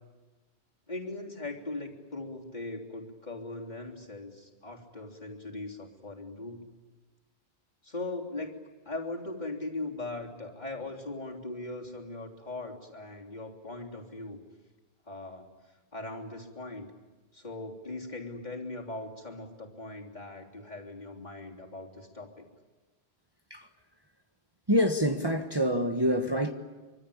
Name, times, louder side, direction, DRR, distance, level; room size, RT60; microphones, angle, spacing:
voice 1, 0.9-6.7 7.8-8.6 8.9-14.4 15.1-15.5 15.9-16.9 17.3-22.5, left 2 dB, 45° left, 3.6 m, -39 dB
voice 2, 24.7-26.5, equal, 25° right, 1.4 m, -26 dB
25.5 x 25.0 x 8.7 m
omnidirectional pair, 1.1 m